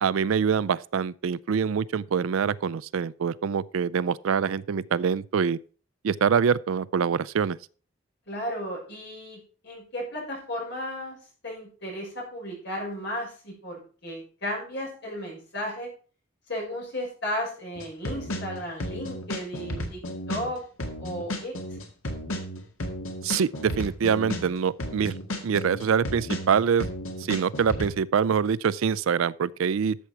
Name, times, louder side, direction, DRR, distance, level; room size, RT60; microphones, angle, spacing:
voice 1, 0.0-5.6 6.0-7.6 23.2-26.9 27.2-30.0, right 6 dB, 70° right, 0.4 m, -25 dB
voice 2, 8.3-11.1 11.4-15.9 16.5-20.6 21.0-21.5, equal, 50° left, 6.4 m, -34 dB
sound 1, 17.8-27.9, equal, 80° left, 2.0 m, -33 dB
13.0 x 7.2 x 4.5 m
head